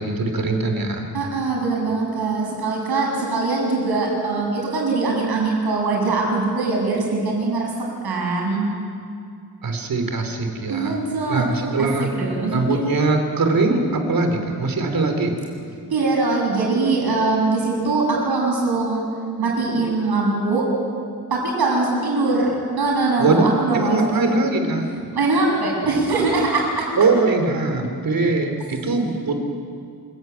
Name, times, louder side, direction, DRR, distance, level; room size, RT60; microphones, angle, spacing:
voice 1, 0.0-1.1 9.6-11.0 11.3-12.1 12.5-15.3 23.2-23.5 23.7-24.9 27.0-29.4, right 3 dB, 65° right, 5 dB, 3.5 m, -21 dB
voice 2, 1.1-7.7 8.0-8.7 10.7-11.9 12.1-12.8 15.9-19.1 19.4-20.7 21.3-24.3 25.1-26.9, right 3 dB, 90° right, -2 dB, 7.7 m, -22 dB
27.5 x 15.5 x 9.3 m, 2.4 s
wide cardioid pair, 165°, 37 cm